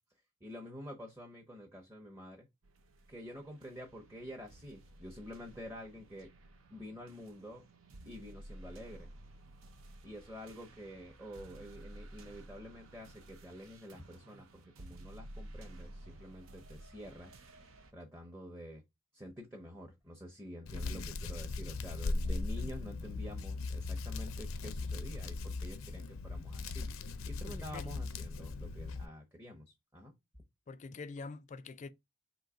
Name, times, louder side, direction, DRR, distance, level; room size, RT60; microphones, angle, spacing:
voice 1, 0.4-2.5 3.1-6.3 6.7-7.6 8.0-9.1 10.0-17.4 17.9-18.8 19.1-30.1, equal, 15° right, 0.7 m, -48 dB
sound 1, 2.6-17.9, right 1 dB, 75° right, 0.6 m, -54 dB
Hands, 20.7-29.1, left 3 dB, 90° left, 0.5 m, -38 dB
voice 2, 27.4-27.9 30.7-31.9, left 4 dB, 35° left, 0.4 m, -45 dB
3.9 x 2.7 x 4.8 m
head